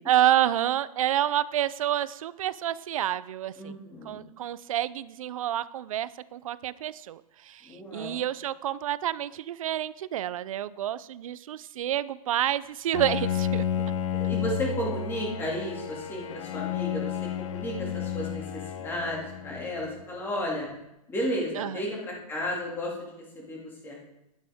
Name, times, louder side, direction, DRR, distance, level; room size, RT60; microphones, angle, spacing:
voice 1, 0.1-3.8 4.1-13.6 21.6-21.8, right 12 dB, 60° right, 18 dB, 0.5 m, -28 dB
voice 2, 3.6-4.2 7.6-8.2 14.1-20.7 21.1-24.0, equal, 10° left, -2 dB, 2.4 m, -33 dB
Bowed string instrument, 12.9-20.0, left 8 dB, 55° left, 0.8 m, -32 dB
11.5 x 9.7 x 3.6 m, 0.90 s
hypercardioid pair, 150°, 20 cm